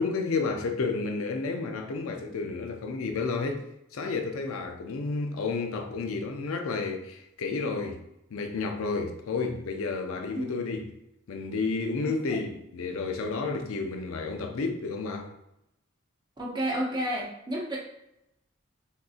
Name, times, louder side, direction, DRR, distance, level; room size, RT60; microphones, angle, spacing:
voice 1, 0.0-3.6 3.9-8.0 8.3-10.9 11.3-15.3, left 4 dB, 80° left, 0.4 m, -31 dB
voice 2, 12.0-12.4 16.4-17.8, right 1 dB, 20° right, 0.6 m, -31 dB
3.6 x 2.6 x 2.4 m
head